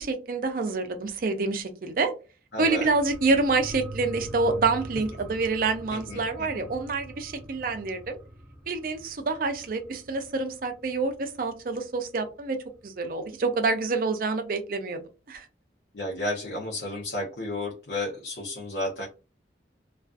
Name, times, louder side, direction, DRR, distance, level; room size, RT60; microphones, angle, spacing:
voice 1, 0.0-2.1 2.6-8.2 8.7-12.6 12.8-15.0 15.3-15.5, right 3 dB, 50° right, 7 dB, 0.4 m, -27 dB
voice 2, 2.5-2.9 5.9-6.7 15.9-19.1, left 1 dB, 70° left, -3 dB, 0.6 m, -32 dB
sound 1, 2.6-11.7 12.0-12.1, right 1 dB, 5° right, 0.6 m, -43 dB
2.4 x 2.4 x 2.3 m, 0.33 s
head